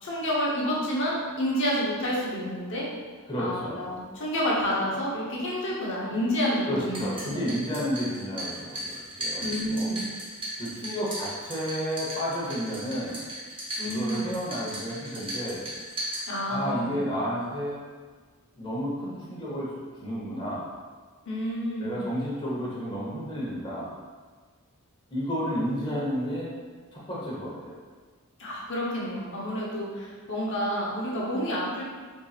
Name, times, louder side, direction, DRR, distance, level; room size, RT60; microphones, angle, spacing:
voice 1, 0.0-2.9 3.4-7.4 9.4-10.1 13.8-14.3 16.3-16.9 21.3-22.0 28.4-31.9, equal, 55° left, -5 dB, 0.9 m, -29 dB
voice 2, 3.3-3.9 6.7-9.9 10.6-13.2 13.8-15.6 16.5-17.8 18.6-19.7 20.0-20.6 21.8-23.9 25.1-26.5 26.9-27.8, equal, 20° left, -7 dB, 1.0 m, -31 dB
sound 1, 6.8-16.8, right 1 dB, 25° right, 0.9 m, -37 dB
4.5 x 2.7 x 2.4 m, 1.5 s
head